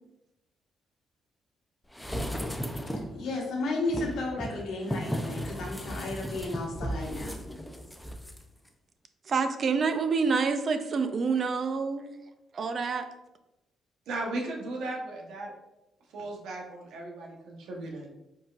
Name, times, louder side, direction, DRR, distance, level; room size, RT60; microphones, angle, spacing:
sound 1, 1.9-3.2 3.9-8.4 8.7-8.8, equal, 5° left, 0.5 m, -35 dB
voice 1, 2.9-7.3, left 2 dB, 80° left, -1 dB, 1.3 m, -33 dB
voice 2, 9.3-12.1 12.5-13.0, right 5 dB, 50° right, 8 dB, 0.5 m, -27 dB
voice 3, 14.1-15.5 16.1-18.1, right 2 dB, 80° right, 0 dB, 1.0 m, -36 dB
4.7 x 3.9 x 2.5 m, 0.94 s
cardioid pair, 90°, 0 cm